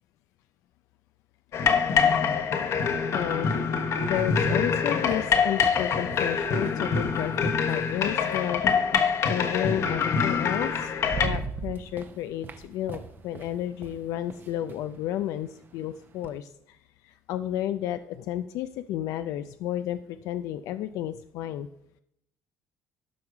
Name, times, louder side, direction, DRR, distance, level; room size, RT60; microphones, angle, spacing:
sound 1, 1.5-11.3, left 6 dB, 55° left, 1.1 m, -25 dB
voice 1, 3.1-3.5 4.0-8.9 9.2-10.9 11.2-21.7, left 12 dB, 75° left, 10 dB, 0.4 m, -32 dB
sound 2, 4.4-9.0 10.2-10.3 10.7-16.4, right 5 dB, 35° right, 0.9 m, -40 dB
12.5 x 5.4 x 4.8 m, 0.77 s
cardioid pair, 110°, 6 cm